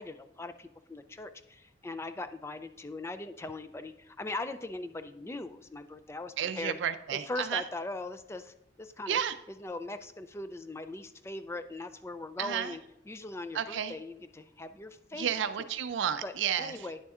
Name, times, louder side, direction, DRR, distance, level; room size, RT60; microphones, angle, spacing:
voice 1, 0.0-6.8 7.1-9.2 9.6-15.3 16.2-16.3 16.6-17.0, left 2 dB, 15° left, 10 dB, 0.3 m, -40 dB
voice 2, 6.4-7.6 9.1-9.3 12.4-12.8 13.5-14.0 15.1-16.9, right 8 dB, 80° right, 11 dB, 0.4 m, -32 dB
9.6 x 6.9 x 2.4 m, 0.86 s
head